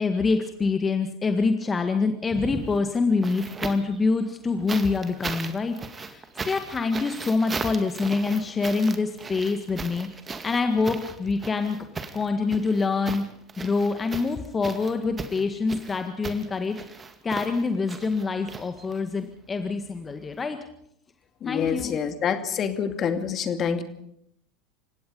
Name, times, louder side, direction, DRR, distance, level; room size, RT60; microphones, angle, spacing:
voice 1, 0.0-10.1 10.4-11.9 12.1-13.2 13.6-16.8 17.2-20.6 21.5-21.9, left 4 dB, 25° left, 7 dB, 1.8 m, -26 dB
sound 1, 2.2-4.0 4.7-19.2 20.3-20.4, right 4 dB, 25° right, 2.1 m, -37 dB
voice 2, 21.4-23.8, left 7 dB, 40° left, 8 dB, 2.3 m, -27 dB
29.0 x 17.0 x 5.4 m, 0.75 s
hypercardioid pair, 80°, 0 cm